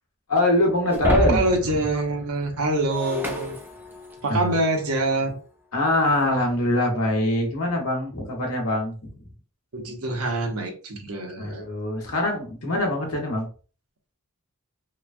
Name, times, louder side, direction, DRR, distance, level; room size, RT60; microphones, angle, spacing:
voice 1, 0.3-1.4 4.3-4.6 5.7-9.1 11.4-13.5, left 1 dB, 70° left, 1.0 m, -23 dB
Shatter, 0.9-4.4, right 1 dB, 10° right, 0.4 m, -29 dB
voice 2, 1.3-3.6 4.2-5.4 9.7-11.6, right 2 dB, 70° right, 0.8 m, -25 dB
3.1 x 2.2 x 2.5 m
head